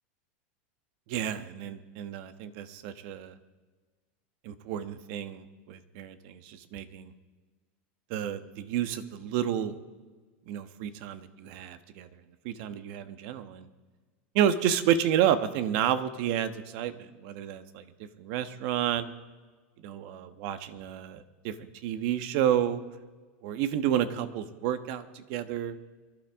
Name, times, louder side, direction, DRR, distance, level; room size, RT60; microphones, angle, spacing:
voice 1, 1.1-3.4 4.4-7.1 8.1-9.7 10.5-12.1 12.4-13.7 14.3-17.8 18.2-19.0 19.8-22.8 23.4-25.8, right 10 dB, 55° right, 11 dB, 1.2 m, -30 dB
24.5 x 12.0 x 3.7 m, 1.3 s
supercardioid pair, 140°, 7 cm